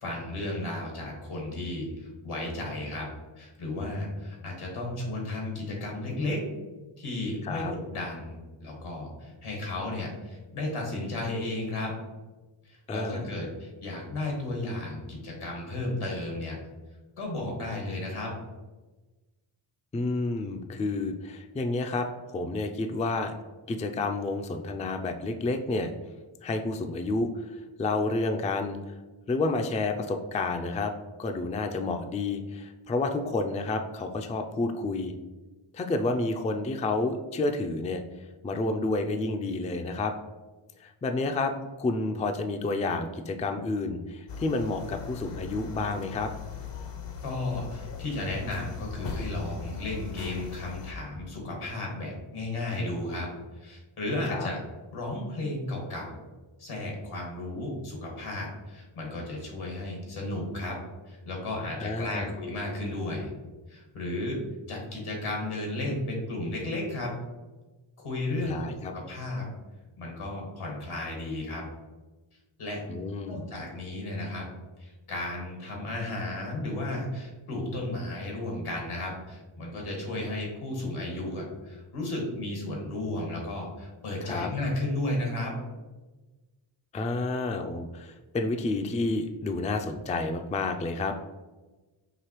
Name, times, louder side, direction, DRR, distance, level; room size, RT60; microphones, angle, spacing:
voice 1, 0.0-3.1 3.4-6.4 7.0-11.9 12.6-16.6 17.2-18.3 47.2-53.3 53.5-54.6 54.9-56.2 56.6-60.8 61.1-63.3 63.7-67.1 68.0-68.6 68.9-69.5 70.0-71.7 72.6-72.8 73.3-74.5 74.8-85.6, left 2 dB, 85° left, 0 dB, 1.4 m, -34 dB
voice 2, 12.9-13.3 19.9-23.3 23.7-25.9 26.4-28.8 29.3-30.9 31.2-35.1 35.7-38.0 38.4-40.1 40.8-41.5 41.8-46.3 54.3-54.5 61.8-62.3 68.4-68.9 72.9-73.4 84.2-84.5 86.9-91.1, left 3 dB, 15° left, 5 dB, 0.3 m, -30 dB
sound 1, 44.3-50.9, left 6 dB, 60° left, 0.7 m, -39 dB
4.9 x 2.8 x 3.0 m, 1.2 s
cardioid pair, 50°, 50 cm